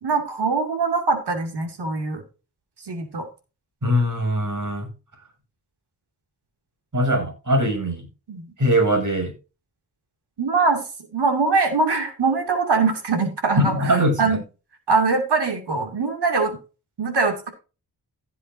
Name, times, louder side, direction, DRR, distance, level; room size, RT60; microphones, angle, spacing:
voice 1, 0.0-2.2 2.8-3.3 8.3-8.5 10.4-10.8 11.1-14.4 14.9-16.6 17.0-17.5, right 4 dB, 80° right, 5 dB, 2.5 m, -22 dB
voice 2, 3.8-4.9 6.9-8.1 8.6-9.3 13.6-14.4, equal, 50° right, 3 dB, 7.1 m, -21 dB
16.0 x 7.5 x 2.7 m, 0.31 s
cardioid pair, 70°, 40 cm